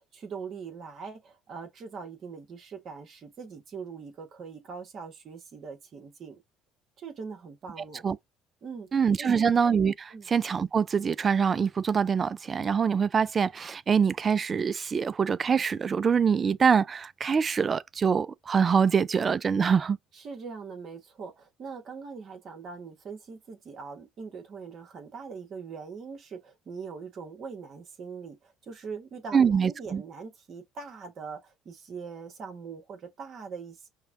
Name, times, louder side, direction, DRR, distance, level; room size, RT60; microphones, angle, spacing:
voice 1, 0.0-6.4 7.0-8.0 8.6-8.9 9.2-9.5 10.1-10.3 20.1-33.9, right 5 dB, 50° right, 1.4 m, -42 dB
voice 2, 8.9-20.0 29.3-30.0, right 6 dB, 35° right, 0.3 m, -24 dB
5.6 x 2.2 x 2.6 m
hypercardioid pair, 70°, 0 cm